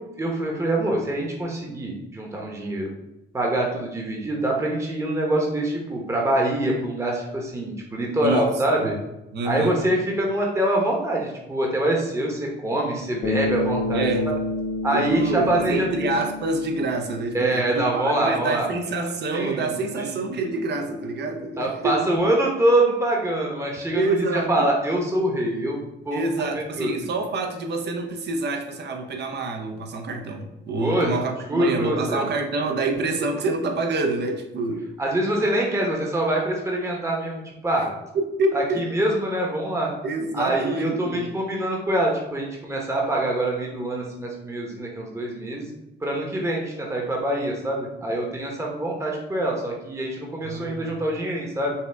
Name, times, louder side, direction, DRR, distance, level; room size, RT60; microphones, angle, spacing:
voice 1, 0.2-2.9 3.3-9.0 9.4-14.1 14.8-16.1 17.3-18.7 19.3-19.7 20.0-20.2 21.6-26.2 26.8-26.9 30.8-31.1 31.5-32.2 35.0-37.9 38.5-39.9 40.3-45.7 46.0-51.7, right 1 dB, 15° right, -1 dB, 0.9 m, -24 dB
voice 2, 8.2-8.5 8.8-8.9 9.3-9.8 13.9-14.3 14.9-22.0 23.9-24.7 26.1-34.9 37.8-37.9 38.4-38.8 40.0-41.3 50.4-51.0, right 2 dB, 60° right, 4 dB, 0.8 m, -27 dB
Bass guitar, 13.2-17.6, left 2 dB, 60° left, 1.0 m, -29 dB
5.5 x 2.3 x 3.4 m, 0.94 s
cardioid pair, 90°, 20 cm